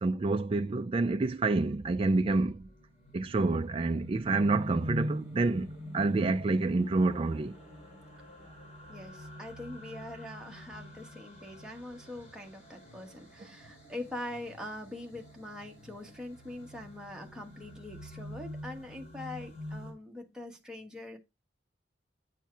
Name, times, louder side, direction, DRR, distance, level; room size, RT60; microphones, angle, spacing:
voice 1, 0.0-2.6 3.1-5.7 5.9-7.5, right 3 dB, 30° right, 0.4 m, -28 dB
sound 1, 1.9-19.9, left 1 dB, 45° left, 4.3 m, -45 dB
voice 2, 8.9-21.2, left 1 dB, 5° right, 1.3 m, -43 dB
9.2 x 4.5 x 4.5 m
head